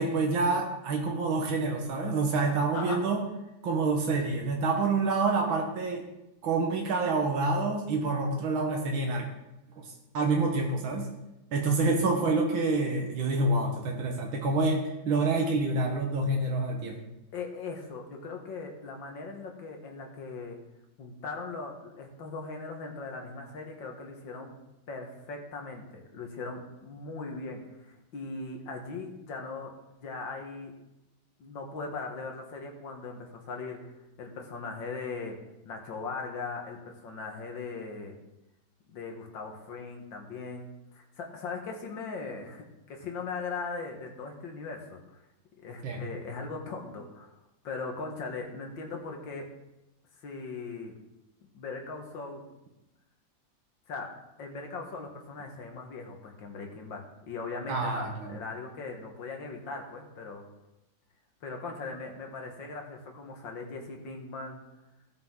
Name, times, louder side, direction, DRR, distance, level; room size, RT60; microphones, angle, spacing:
voice 1, 0.0-3.2 3.6-6.0 6.4-9.3 9.8-9.9 10.1-11.1 11.5-17.0 45.8-46.0 57.7-58.4, right 3 dB, 90° right, 1 dB, 2.0 m, -27 dB
voice 2, 17.3-20.6 21.0-24.5 24.9-29.7 30.0-30.7 31.4-35.4 35.6-38.2 38.9-45.2 45.6-47.3 47.6-49.5 50.2-50.9 51.5-52.4 53.9-54.1 54.4-60.5 61.4-64.6, left 4 dB, 75° left, 2 dB, 2.3 m, -39 dB
16.0 x 6.7 x 3.8 m, 0.94 s
omnidirectional pair, 2.1 m